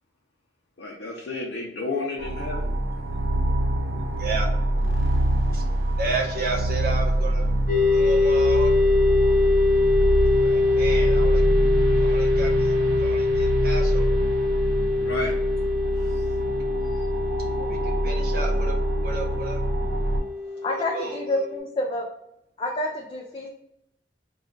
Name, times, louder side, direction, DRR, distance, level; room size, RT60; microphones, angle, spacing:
voice 1, 0.8-2.8 15.0-15.3 16.1-16.2, left 2 dB, 80° left, -2 dB, 0.5 m, -31 dB
sound 1, 2.2-20.2, right 1 dB, 90° right, 0.5 m, -25 dB
voice 2, 4.1-4.5 5.5-5.7 6.0-7.4 7.9-8.7 10.4-11.4 12.0-12.7 13.0-14.3 17.6-18.8 19.0-19.6 20.7-21.5, right 3 dB, 55° right, 0 dB, 0.7 m, -32 dB
sound 2, 7.7-21.6, left 3 dB, 45° left, 0.8 m, -23 dB
voice 3, 20.6-22.1 22.6-23.5, left 1 dB, 30° left, 0 dB, 0.3 m, -28 dB
2.3 x 2.2 x 3.6 m, 0.81 s
head